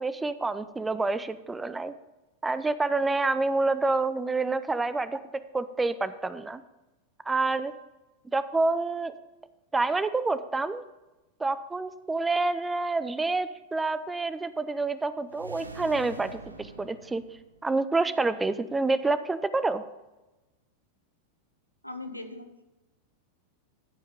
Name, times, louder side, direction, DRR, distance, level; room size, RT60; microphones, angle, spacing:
voice 1, 0.0-1.9 2.4-5.2 5.5-6.6 7.3-7.7 8.3-9.1 9.7-10.8 11.4-17.2 17.6-19.9, right 3 dB, 10° right, 13 dB, 0.5 m, -28 dB
sound 1, 15.3-17.9, right 3 dB, 80° right, 0.7 m, -45 dB
voice 2, 21.8-22.6, left 2 dB, 90° left, 7 dB, 0.8 m, -40 dB
13.0 x 5.4 x 5.1 m, 1.1 s
figure-of-eight pair, 90°, 0 cm